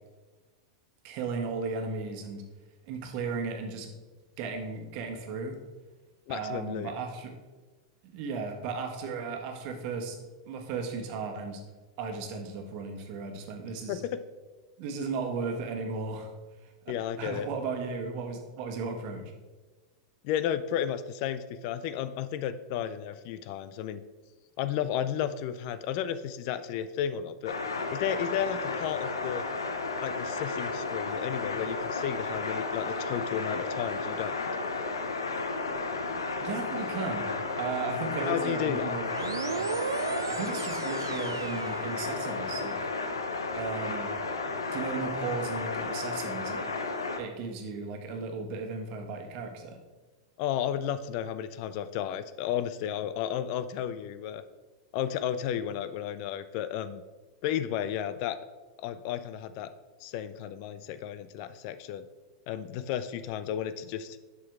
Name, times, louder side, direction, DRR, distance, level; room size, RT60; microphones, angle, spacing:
voice 1, 1.0-2.4 2.9-3.9 4.4-5.6 6.3-7.3 8.1-10.2 10.5-11.6 12.0-14.0 14.8-16.3 17.2-19.2 36.4-39.1 39.5-39.7 40.3-42.8 43.5-44.1 44.7-46.7 47.2-49.8, right 4 dB, 50° right, 4 dB, 1.3 m, -35 dB
voice 2, 6.3-6.9 13.9-14.2 16.9-17.5 20.2-24.0 24.6-27.6 27.9-29.4 30.0-34.5 38.3-39.0 50.4-54.4 54.9-57.0 57.4-58.4 58.8-59.7 60.0-62.1 62.5-64.2, left 10 dB, 50° left, 13 dB, 0.4 m, -33 dB
sound 1, 27.4-47.2, left 3 dB, 85° left, 0.8 m, -33 dB
sound 2, 39.1-42.6, right 6 dB, 85° right, 0.4 m, -36 dB
7.5 x 6.0 x 3.6 m, 1.3 s
hypercardioid pair, 100°, 2 cm